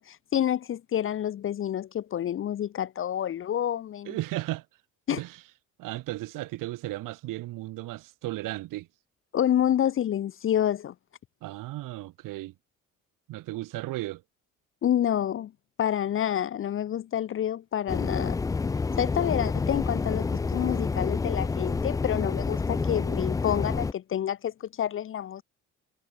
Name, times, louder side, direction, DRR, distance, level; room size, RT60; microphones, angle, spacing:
voice 1, 0.0-4.1 5.1-5.2 9.3-10.9 14.8-15.5 15.8-18.4 19.0-25.4, left 10 dB, 40° left, 0.7 m, -28 dB
voice 2, 4.1-4.7 5.1-5.4 5.8-8.9 11.4-12.5 13.3-14.2, right 17 dB, 90° right, 7.6 m, -35 dB
sound 1, 17.9-23.9, left 4 dB, 10° left, 0.3 m, -28 dB
cardioid pair, 130°, 31 cm